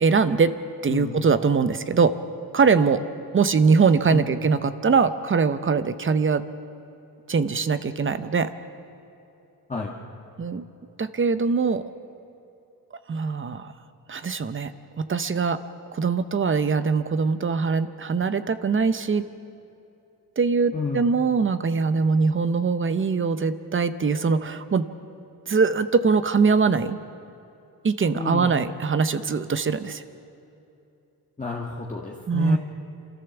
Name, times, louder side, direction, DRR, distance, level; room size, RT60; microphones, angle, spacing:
voice 1, 0.0-0.5 0.8-2.1 2.5-3.0 3.3-6.4 7.3-8.5 10.4-10.6 11.0-11.9 13.1-13.7 14.1-14.7 15.0-15.6 15.9-19.2 20.4-24.9 25.5-27.0 27.8-30.0 32.3-32.6, right 5 dB, 30° right, 13 dB, 0.7 m, -22 dB
voice 2, 20.7-21.1 28.1-28.6 31.4-32.6, left 4 dB, 20° left, -2 dB, 1.6 m, -30 dB
27.5 x 14.0 x 7.1 m, 2.8 s
wide cardioid pair, 130°, 39 cm